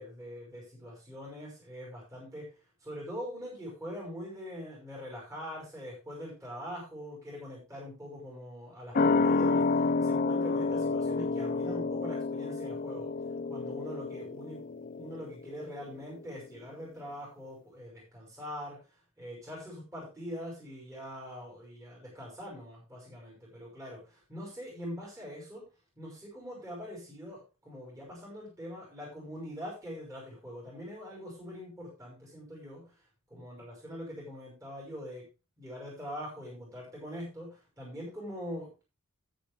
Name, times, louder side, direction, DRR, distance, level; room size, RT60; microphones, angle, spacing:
voice 1, 0.0-2.5 2.8-13.1 13.5-14.6 15.0-18.8 19.2-25.7 26.0-32.8 33.3-35.3 35.6-38.8, equal, 15° right, -4 dB, 6.0 m, -43 dB
sound 1, 8.9-16.0 16.3-16.4, left 3 dB, 40° left, 0.4 m, -29 dB
10.5 x 10.0 x 3.6 m, 0.30 s
head